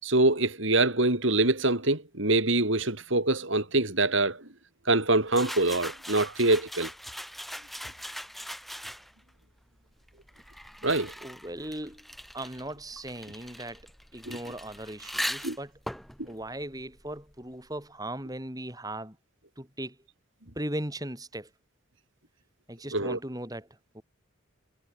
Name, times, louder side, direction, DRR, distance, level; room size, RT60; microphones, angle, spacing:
voice 1, 0.0-4.4 4.9-6.9 10.8-11.1 14.3-14.4 15.4-15.6 22.9-23.2, right 2 dB, 65° right, 4.1 m, -24 dB
sound 1, 5.3-9.3 10.1-17.5, equal, ahead, 5.5 m, -40 dB
voice 2, 11.2-12.1 12.3-13.8 14.1-15.7 16.3-19.2 19.6-20.0 20.5-21.5 22.7-23.7 23.9-24.0, right 1 dB, 20° right, 6.5 m, -38 dB
head